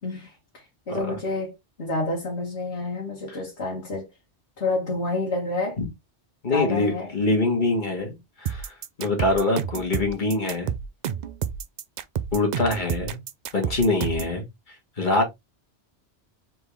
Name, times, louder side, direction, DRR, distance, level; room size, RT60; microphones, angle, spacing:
voice 1, 0.0-4.1 4.6-5.8 6.5-7.1, left 2 dB, 70° left, 1.8 m, -29 dB
voice 2, 6.4-10.7 12.3-13.2 13.5-15.3, left 2 dB, 45° left, 1.7 m, -24 dB
sound 1, 8.5-14.4, right 8 dB, 60° right, 0.5 m, -30 dB
4.3 x 3.6 x 3.4 m
omnidirectional pair, 1.2 m